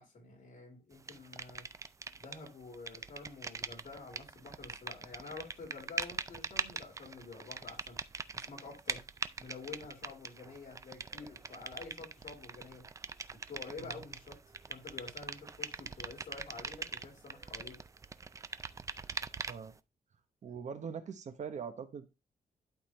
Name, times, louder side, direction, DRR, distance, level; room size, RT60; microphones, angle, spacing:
voice 1, 0.0-1.6 2.2-9.1 9.4-12.8 13.5-14.4 14.7-17.8, left 4 dB, 55° left, 4.5 m, -49 dB
sound 1, 1.1-2.5 2.7-19.8, right 4 dB, 20° right, 0.3 m, -42 dB
voice 2, 20.4-22.1, right 6 dB, 45° right, 0.9 m, -42 dB
11.5 x 4.0 x 3.2 m
wide cardioid pair, 175°, 16 cm